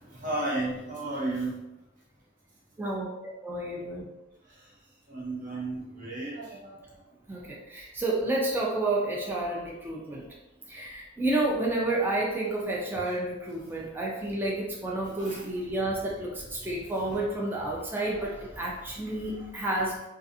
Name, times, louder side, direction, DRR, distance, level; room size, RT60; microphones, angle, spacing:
voice 1, 0.2-1.6 5.1-6.7 15.2-15.4 17.1-17.2, right 2 dB, 45° right, -6 dB, 0.9 m, -33 dB
voice 2, 2.8-4.1 7.3-10.2 10.7-20.0, right 2 dB, 10° right, -4 dB, 0.4 m, -30 dB
2.4 x 2.4 x 2.6 m, 0.96 s
head